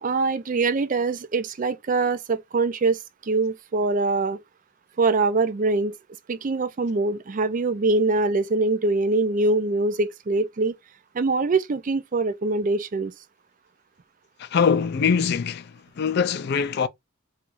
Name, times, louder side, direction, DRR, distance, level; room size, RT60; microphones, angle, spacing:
voice 1, 0.0-4.4 5.0-5.9 6.3-10.8 11.1-13.1, right 3 dB, 40° right, 0.4 m, -23 dB
voice 2, 14.4-16.9, left 6 dB, 50° left, 0.4 m, -23 dB
4.5 x 2.4 x 2.5 m
head